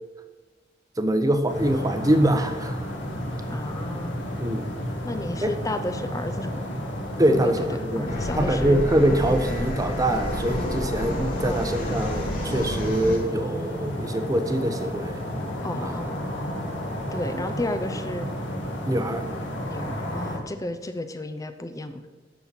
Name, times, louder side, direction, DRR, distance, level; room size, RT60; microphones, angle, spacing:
voice 1, 1.0-2.7 4.4-4.7 5.4-5.5 7.2-7.6 7.9-8.1 8.4-15.2 15.8-15.9 17.3-17.4 18.9-19.3, right 1 dB, 20° right, 8 dB, 0.8 m, -24 dB
sound 1, 1.5-20.4, equal, 70° left, 1.9 m, -32 dB
voice 2, 3.5-4.2 5.0-6.6 7.3-8.8 11.4-11.7 15.6-16.2 17.1-18.3 19.7-22.1, left 1 dB, 20° left, 9 dB, 0.6 m, -32 dB
sound 2, 8.1-13.2, left 1 dB, 50° left, 3.5 m, -30 dB
12.5 x 4.5 x 7.4 m, 1.2 s
head